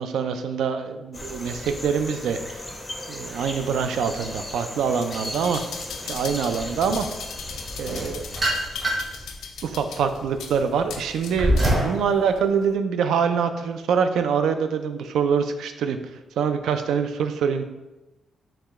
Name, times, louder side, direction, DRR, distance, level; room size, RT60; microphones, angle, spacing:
voice 1, 0.0-2.6 3.1-5.6 6.0-7.1 7.8-8.2 9.6-17.6, right 6 dB, 85° right, 8 dB, 0.3 m, -25 dB
sound 1, 1.1-9.3, left 1 dB, 15° left, 0.5 m, -37 dB
sound 2, 4.9-11.9 12.4-12.5, left 6 dB, 85° left, 0.4 m, -38 dB
sound 3, 7.8-9.2 9.7-12.0, right 1 dB, 30° right, 0.8 m, -24 dB
4.7 x 2.2 x 3.4 m, 1.0 s
wide cardioid pair, 165°, 0 cm